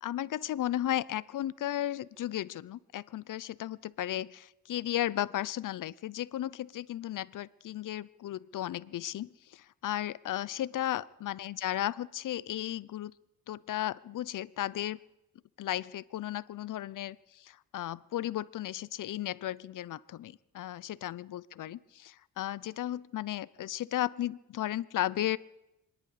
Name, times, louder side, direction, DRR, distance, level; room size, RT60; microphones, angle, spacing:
voice 1, 0.0-13.1 13.5-15.0 15.6-25.4, left 13 dB, 60° left, 19 dB, 0.7 m, -35 dB
27.0 x 10.5 x 4.9 m, 0.90 s
cardioid pair, 65°, 36 cm